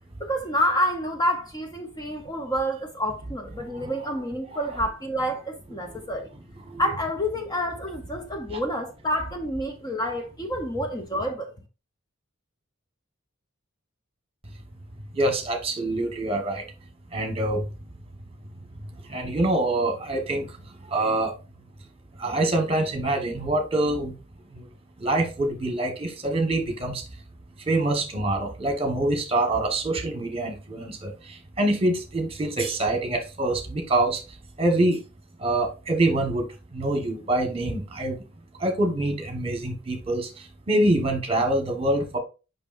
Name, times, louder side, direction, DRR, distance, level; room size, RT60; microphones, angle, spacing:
voice 1, 0.2-6.3 6.8-11.5, equal, 20° left, 0.7 m, -28 dB
voice 2, 15.1-16.6 17.1-17.6 19.1-20.5 20.9-21.3 22.2-24.1 24.5-24.6 25.0-27.0 27.7-34.2 34.6-35.0 35.4-36.5 36.7-38.2 38.6-40.3 40.7-42.2, right 1 dB, 30° right, 1.3 m, -25 dB
6.6 x 5.6 x 2.5 m
head